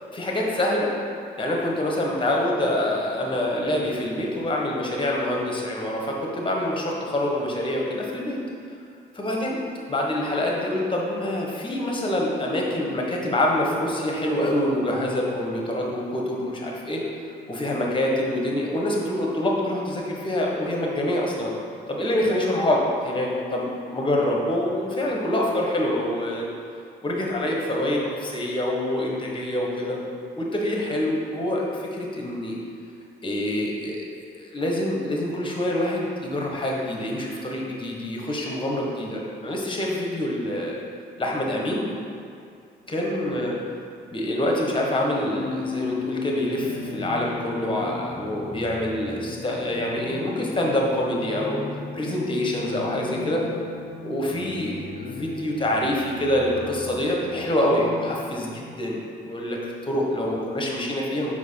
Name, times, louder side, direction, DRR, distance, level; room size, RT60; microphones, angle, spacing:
voice 1, 0.1-1.0 1.4-8.4 9.1-9.6 9.9-17.0 17.5-21.5 21.9-26.5 27.0-30.0 30.3-32.6 33.2-34.1 34.3-40.8 41.2-41.9 42.9-43.6 44.1-51.6 51.9-53.4 54.0-59.0 59.2-61.3, left 1 dB, 25° left, -2 dB, 1.3 m, -26 dB
sound 1, 45.3-58.5, left 5 dB, 45° left, 0.6 m, -36 dB
4.7 x 4.5 x 5.6 m, 2.4 s
cardioid pair, 90°, 20 cm